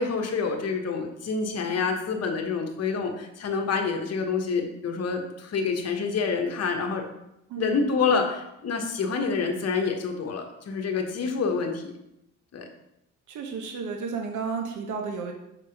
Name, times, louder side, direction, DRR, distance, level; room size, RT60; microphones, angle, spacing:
voice 1, 0.0-7.0 7.6-11.9 12.5-12.7, left 5 dB, 55° left, 4 dB, 1.2 m, -27 dB
voice 2, 7.5-7.9 13.3-15.3, right 5 dB, 75° right, 2 dB, 1.0 m, -32 dB
6.0 x 3.5 x 5.7 m, 0.85 s
cardioid pair, 90°, 30 cm